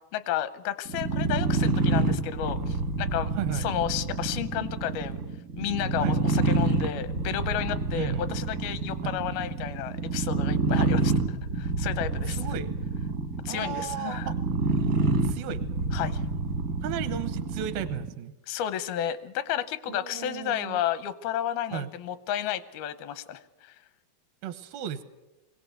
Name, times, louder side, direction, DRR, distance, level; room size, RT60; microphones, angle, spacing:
voice 1, 0.1-5.2 5.6-11.1 11.6-12.4 13.5-14.3 15.9-16.2 18.5-23.8, left 10 dB, 85° left, 14 dB, 2.7 m, -32 dB
sound 1, 0.9-18.1, right 3 dB, 65° right, 0.8 m, -28 dB
voice 2, 3.4-3.7 6.0-6.2 8.0-8.3 9.0-9.2 10.8-10.9 12.3-12.7 13.5-14.4 15.2-15.6 16.8-18.3 19.9-20.8 21.7-21.9 24.4-25.0, right 9 dB, 80° right, 11 dB, 2.8 m, -34 dB
22.0 x 17.0 x 8.0 m, 1.1 s
omnidirectional pair, 4.3 m